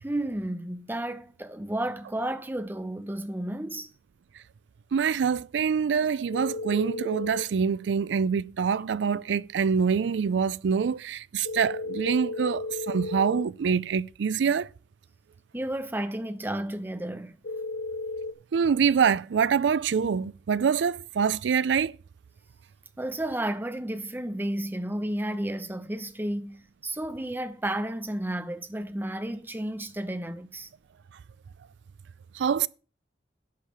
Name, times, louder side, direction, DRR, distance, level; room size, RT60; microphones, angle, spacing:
voice 1, 0.0-3.9 15.5-17.4 23.0-30.7, right 1 dB, 10° right, 0.7 m, -32 dB
voice 2, 4.9-14.7 18.5-22.0 32.3-32.7, right 6 dB, 80° right, 0.4 m, -25 dB
sound 1, 6.3-7.4 11.4-13.4 17.4-18.3, left 2 dB, 60° left, 0.8 m, -34 dB
11.5 x 6.5 x 5.0 m
head